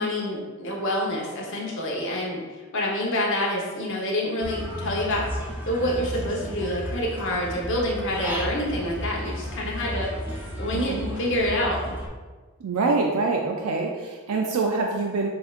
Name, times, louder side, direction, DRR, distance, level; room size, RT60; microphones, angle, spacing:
voice 1, 0.0-2.4 2.7-5.2 5.7-12.0, left 1 dB, 60° left, -2 dB, 1.0 m, -27 dB
Human voice / Bird, 4.4-12.1, equal, 10° right, 0.5 m, -33 dB
voice 2, 10.7-11.0 12.6-15.3, right 3 dB, 75° right, 1 dB, 0.4 m, -25 dB
6.9 x 2.6 x 2.4 m, 1.4 s
head